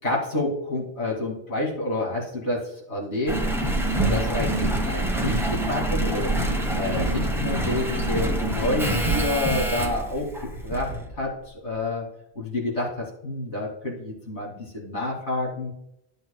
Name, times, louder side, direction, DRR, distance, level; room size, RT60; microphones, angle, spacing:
voice 1, 0.0-3.4 4.1-6.4 6.7-10.3 10.6-12.1 12.3-15.7, left 2 dB, 85° left, -3 dB, 2.9 m, -29 dB
Engine, 3.3-11.1 11.7-11.8, right 1 dB, ahead, 0.9 m, -25 dB
11.5 x 8.2 x 2.3 m, 0.79 s
omnidirectional pair, 1.2 m